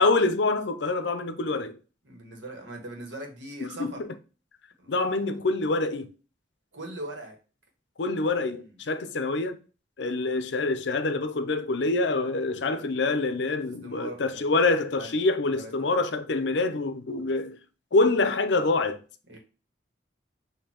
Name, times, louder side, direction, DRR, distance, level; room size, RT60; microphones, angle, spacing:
voice 1, 0.0-1.8 3.6-4.1 4.9-6.1 8.0-9.6 10.0-17.6 17.9-19.0, left 3 dB, 70° left, 0.6 m, -26 dB
voice 2, 2.0-4.0 4.8-5.1 6.7-7.3 8.2-8.8 13.8-14.4 15.0-15.2 15.5-15.7 19.3-19.4, right 1 dB, 80° right, 1.5 m, -40 dB
6.4 x 2.8 x 2.9 m
head